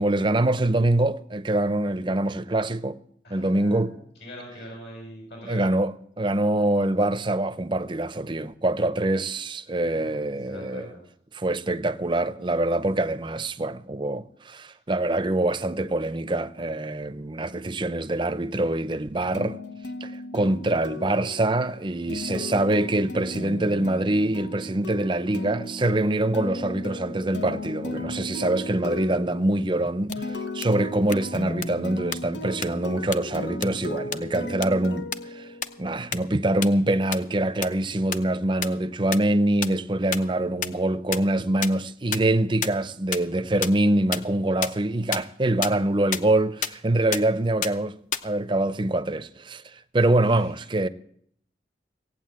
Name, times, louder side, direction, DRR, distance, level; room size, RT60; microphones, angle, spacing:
voice 1, 0.0-3.0 3.3-3.9 5.5-10.9 11.3-19.6 20.0-35.5 35.8-47.9 48.2-50.9, right 1 dB, 25° right, 0.6 m, -24 dB
voice 2, 3.2-5.7 9.9-11.0 50.1-50.5, equal, 75° left, 5.9 m, -43 dB
sound 1, 19.3-36.0, left 1 dB, 90° left, 1.1 m, -36 dB
sound 2, 30.1-30.2 30.6-30.7 31.1-31.2 31.6-31.7 32.1-32.2 32.6-32.7 33.1-33.2 33.6-33.7 34.1-34.2 34.6-34.7 35.1-35.2 35.6-35.7 36.1-36.2 36.6-36.7 37.1-37.2 37.6-37.7 38.1-38.2 38.6-38.7 39.1-39.2 39.6-39.7 40.1-40.2 40.6-40.7 41.1-41.2 41.6-41.7 42.1-42.2 42.6-42.7 43.1-43.2 43.6-43.7 44.1-44.2 44.6-44.7 45.1-45.2 45.6-45.7 46.1-46.2 46.6-46.7 47.1-47.2 47.6-47.7 48.1-48.2, left 8 dB, 45° left, 0.7 m, -26 dB
17.0 x 8.8 x 7.5 m
head